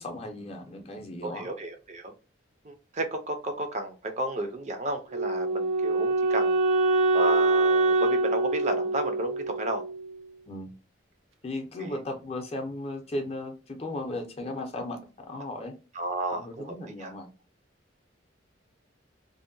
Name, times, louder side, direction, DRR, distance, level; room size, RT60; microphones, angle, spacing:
voice 1, 0.0-1.5 10.5-10.7 11.4-15.7 16.3-17.3, left 1 dB, 30° left, 0.5 m, -36 dB
voice 2, 1.2-2.1 2.6-6.6 7.1-9.8 11.8-12.0 15.9-17.1, right 1 dB, 35° right, 0.4 m, -32 dB
Wind instrument woodwind instrument, 5.1-10.2, right 2 dB, 80° right, 0.6 m, -25 dB
2.6 x 2.1 x 2.5 m
head